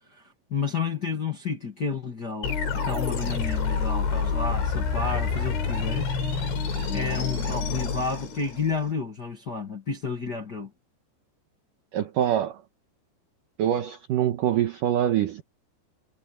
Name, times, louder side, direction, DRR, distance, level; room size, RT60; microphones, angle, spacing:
voice 1, 0.5-6.1 6.9-10.7, left 5 dB, 45° left, 1.3 m, -31 dB
sound 1, 2.4-8.9, left 5 dB, 80° left, 7.7 m, -28 dB
voice 2, 11.9-12.6 13.6-15.4, right 10 dB, 70° right, 2.1 m, -24 dB
omnidirectional pair, 5.2 m